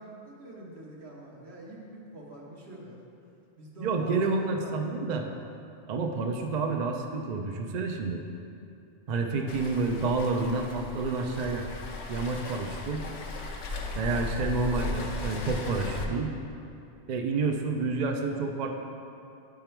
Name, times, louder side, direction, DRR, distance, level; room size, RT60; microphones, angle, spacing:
voice 1, 0.0-3.0 3.6-4.7, right 1 dB, 70° right, -4 dB, 1.4 m, -45 dB
voice 2, 3.8-5.3 5.9-8.2 9.1-11.7 12.1-13.1 13.9-16.3 17.1-18.8, right 3 dB, 55° right, 3 dB, 0.5 m, -29 dB
Waves surf, 9.5-16.0, left 2 dB, 80° left, 1.0 m, -36 dB
9.6 x 3.7 x 4.4 m, 2.7 s
omnidirectional pair, 1.1 m